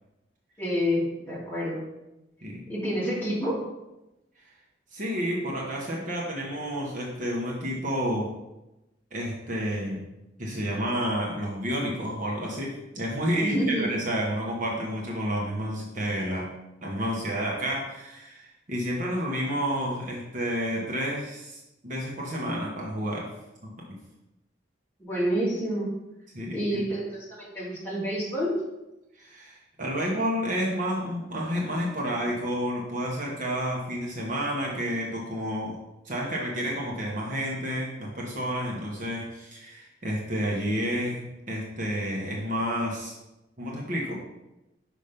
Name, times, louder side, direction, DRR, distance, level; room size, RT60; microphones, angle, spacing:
voice 1, 0.6-1.8 2.7-3.7 13.4-13.9 25.0-25.9 26.5-28.5, equal, 10° left, -8 dB, 2.6 m, -28 dB
voice 2, 4.9-8.3 9.1-10.0 10.4-16.5 16.8-23.3 23.6-24.0 26.3-26.8 29.2-35.8 36.0-43.1 43.6-44.1, equal, 45° right, -3 dB, 1.2 m, -30 dB
5.6 x 5.1 x 5.2 m, 0.96 s
head